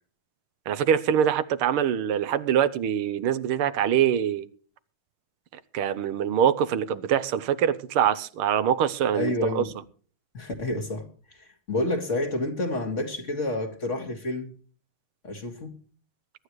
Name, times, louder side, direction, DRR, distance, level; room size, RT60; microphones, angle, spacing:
voice 1, 0.7-4.5 5.7-9.6, right 9 dB, 90° right, 1.8 m, -24 dB
voice 2, 9.1-9.7 10.3-11.1 11.4-14.5 15.2-15.7, left 2 dB, 35° left, 2.3 m, -29 dB
22.5 x 11.5 x 3.1 m
omnidirectional pair, 2.3 m